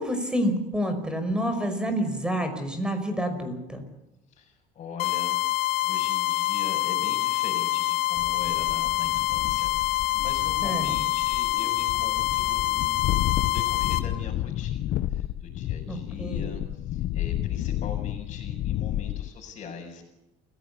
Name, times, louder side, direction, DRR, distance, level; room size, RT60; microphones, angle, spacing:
voice 1, 0.0-3.8 10.6-11.0 15.9-16.5, equal, 5° right, 8 dB, 5.5 m, -28 dB
voice 2, 4.3-20.0, left 5 dB, 40° left, -4 dB, 6.1 m, -42 dB
sound 1, 5.0-14.0, left 17 dB, 75° left, 2.0 m, -26 dB
sound 2, 8.2-19.3, left 13 dB, 60° left, 1.1 m, -31 dB
28.5 x 16.5 x 8.5 m, 0.92 s
cardioid pair, 125°, 16 cm